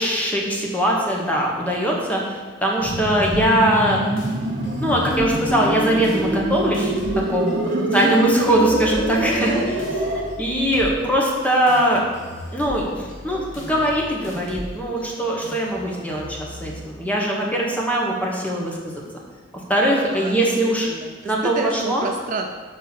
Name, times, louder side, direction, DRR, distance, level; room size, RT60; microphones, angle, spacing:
voice 1, 0.0-2.2 2.6-4.0 4.8-6.9 7.3-9.5 10.4-12.0 12.5-19.0 19.7-20.9 21.2-22.0, right 1 dB, 10° left, -2 dB, 1.0 m, -21 dB
sound 1, 2.8-16.8, equal, 80° left, 1.4 m, -38 dB
sound 2, 2.8-10.2, right 1 dB, 75° right, 1.1 m, -25 dB
voice 2, 7.7-8.2 9.4-9.7 10.0-10.3 20.1-22.5, right 3 dB, 40° right, 3 dB, 0.4 m, -30 dB
5.9 x 3.7 x 5.7 m, 1.5 s
head